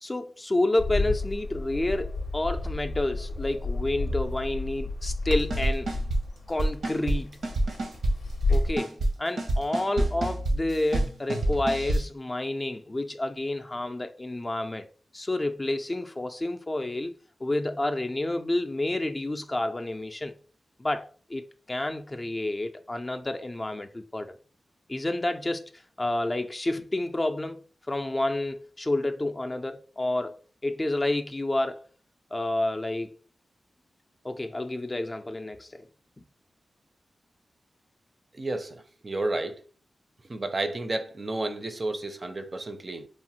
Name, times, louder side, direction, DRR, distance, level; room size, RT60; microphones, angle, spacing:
voice 1, 0.0-5.9 6.5-7.4 8.5-14.9 15.1-17.1 17.4-20.3 20.8-24.3 24.9-25.7 26.0-31.9 32.3-33.2 34.2-35.9, left 2 dB, 30° left, 0.3 m, -29 dB
Bird, 0.8-8.8, left 2 dB, 90° left, 0.6 m, -31 dB
sound 1, 5.5-6.2 6.6-7.2 7.4-8.1 8.5-9.1 9.4-12.0, right 1 dB, 85° right, 0.7 m, -27 dB
voice 2, 38.3-39.6 40.3-43.1, right 2 dB, 40° right, 0.4 m, -31 dB
3.0 x 2.1 x 2.9 m
cardioid pair, 50°, 0 cm